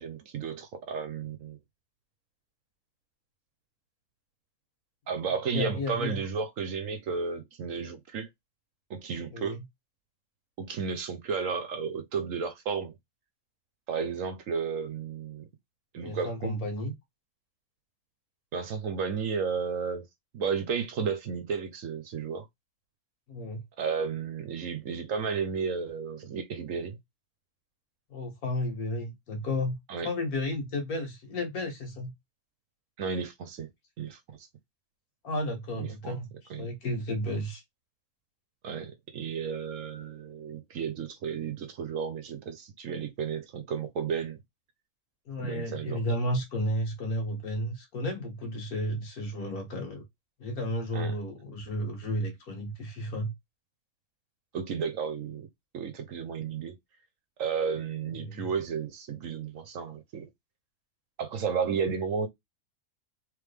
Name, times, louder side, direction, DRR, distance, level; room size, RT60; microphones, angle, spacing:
voice 1, 0.0-1.6 5.1-8.3 8.9-9.6 10.6-13.0 13.9-15.5 15.9-16.5 18.5-20.1 20.3-22.4 23.8-27.0 29.9-30.1 33.0-33.7 34.0-34.5 35.8-36.2 36.5-36.7 38.6-44.4 45.4-46.0 50.9-51.1 54.5-55.5 55.7-56.8 57.4-60.3 61.2-62.3, right 6 dB, 65° right, 1.0 m, -33 dB
voice 2, 5.5-6.2 9.3-9.6 16.0-16.9 23.3-23.6 28.1-29.8 30.0-32.1 35.2-36.3 36.6-37.6 45.3-50.0 50.4-53.3 58.1-58.4, left 1 dB, 70° left, 1.9 m, -32 dB
3.3 x 3.3 x 3.3 m
omnidirectional pair, 1.6 m